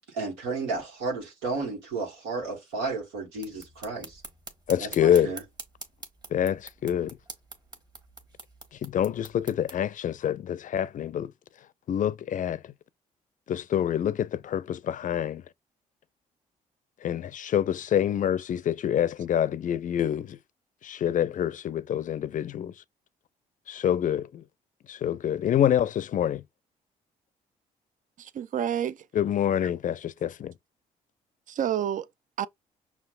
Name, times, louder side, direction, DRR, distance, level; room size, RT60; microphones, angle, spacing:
voice 1, 0.1-4.2 4.8-5.4, right 3 dB, 90° right, 1.4 m, -33 dB
sound 1, 3.4-9.8, right 2 dB, 25° right, 1.4 m, -46 dB
voice 2, 4.7-5.3 6.3-7.2 8.8-11.3 11.9-12.6 13.5-15.4 17.0-20.4 20.8-22.7 23.7-24.4 24.9-26.4 29.1-30.5, left 10 dB, 50° left, 0.5 m, -26 dB
voice 3, 28.2-29.1 31.5-32.1 32.4-32.5, right 10 dB, 50° right, 0.4 m, -29 dB
5.7 x 2.4 x 2.4 m
supercardioid pair, 60°, 17 cm